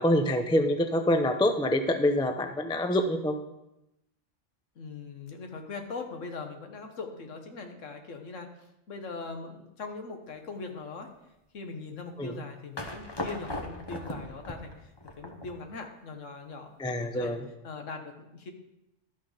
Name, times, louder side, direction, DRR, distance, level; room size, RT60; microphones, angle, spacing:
voice 1, 0.0-3.4 12.2-12.4 16.8-17.4, left 1 dB, 5° left, 7 dB, 0.3 m, -26 dB
voice 2, 4.7-8.5 8.9-11.1 11.5-17.3 17.6-18.5, left 4 dB, 80° left, 4 dB, 1.6 m, -41 dB
sound 1, 12.8-15.8, left 1 dB, 20° left, 0.9 m, -38 dB
12.5 x 5.8 x 5.0 m, 0.87 s
omnidirectional pair, 1.3 m